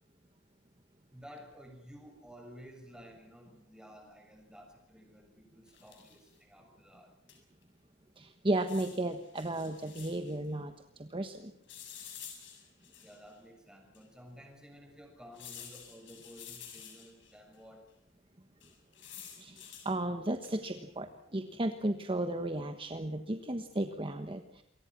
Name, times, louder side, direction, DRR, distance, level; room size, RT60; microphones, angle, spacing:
voice 1, 1.1-7.1 13.0-17.9, equal, 5° right, 3 dB, 6.7 m, -53 dB
sound 1, 5.7-6.3 7.3-7.4 7.6-7.7 8.5-10.4 11.7-13.3 13.9-14.0 15.3-17.3 18.6-19.9 20.4-20.7, left 8 dB, 65° left, 7.1 m, -50 dB
voice 2, 8.2-10.7 11.0-11.5 19.4-24.6, right 1 dB, 25° right, 7 dB, 1.3 m, -34 dB
28.5 x 23.5 x 6.1 m, 0.79 s
head